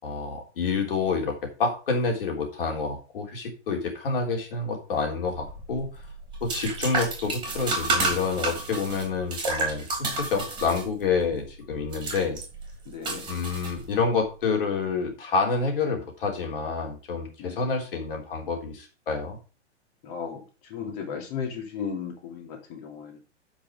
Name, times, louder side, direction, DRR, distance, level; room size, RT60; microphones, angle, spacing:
voice 1, 0.0-6.0 6.4-12.4 13.3-19.4, left 4 dB, 50° left, 2 dB, 3.4 m, -28 dB
sound 1, 5.3-14.2, right 3 dB, 15° right, 2.9 m, -31 dB
voice 2, 12.9-13.2 17.4-17.7 20.0-23.2, left 6 dB, 30° left, 2 dB, 2.9 m, -35 dB
8.1 x 6.2 x 5.0 m, 0.34 s
figure-of-eight pair, 115°, 35 cm